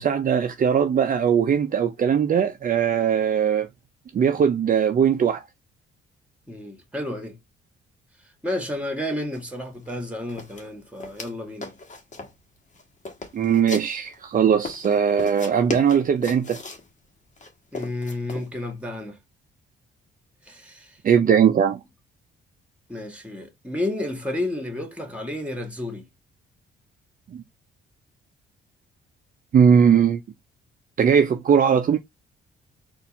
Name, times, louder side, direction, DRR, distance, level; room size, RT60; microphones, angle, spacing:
voice 1, 0.0-3.7 4.1-5.4 13.3-16.6 21.0-21.8 29.5-30.2 31.0-32.0, right 7 dB, 45° right, 0.6 m, -19 dB
voice 2, 6.5-7.4 8.4-11.7 17.7-19.2 20.5-21.0 22.9-26.1, left 1 dB, 5° right, 1.9 m, -31 dB
sound 1, 9.3-9.4 9.7-10.0 10.3-11.3 11.6-12.4 12.7-14.2 14.6-16.9 17.4-18.5, left 4 dB, 40° left, 1.5 m, -37 dB
4.3 x 2.6 x 4.2 m
cardioid pair, 90°, 20 cm